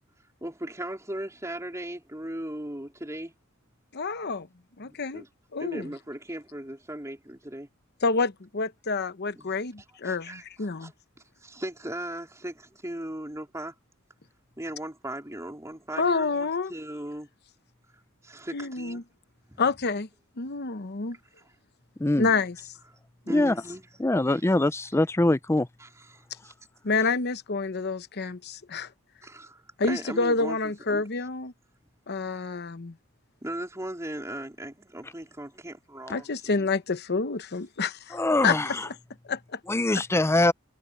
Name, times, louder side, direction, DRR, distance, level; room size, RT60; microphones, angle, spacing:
voice 1, 0.4-3.4 4.8-5.3 5.6-7.7 9.4-9.6 10.0-10.9 11.4-13.8 14.6-17.3 18.2-19.1 19.5-19.6 21.4-21.5 23.2-23.9 24.3-24.4 25.8-26.5 29.2-31.0 33.4-36.7, right 1 dB, 15° right, 3.8 m, -38 dB
voice 2, 3.9-4.5 4.8-5.2 5.5-5.9 8.0-10.9 16.0-16.7 18.5-19.0 19.6-20.1 20.4-21.2 22.2-22.6 23.3-23.4 26.8-28.9 29.8-31.5 32.1-32.9 36.1-38.9 39.3-39.6, left 4 dB, 50° left, 0.9 m, -28 dB
voice 3, 24.0-25.7 38.1-38.9 39.7-40.5, left 2 dB, 10° left, 0.5 m, -23 dB
head